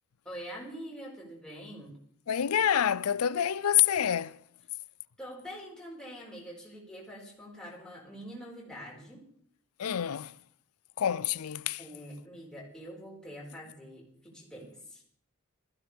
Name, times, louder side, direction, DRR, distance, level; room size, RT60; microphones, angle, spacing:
voice 1, 0.3-2.0 5.2-9.2 11.8-15.0, equal, 5° left, 5.2 m, -45 dB
voice 2, 2.3-4.4 9.8-10.4 11.0-11.8, left 10 dB, 85° left, 0.5 m, -27 dB
19.5 x 15.0 x 3.5 m
head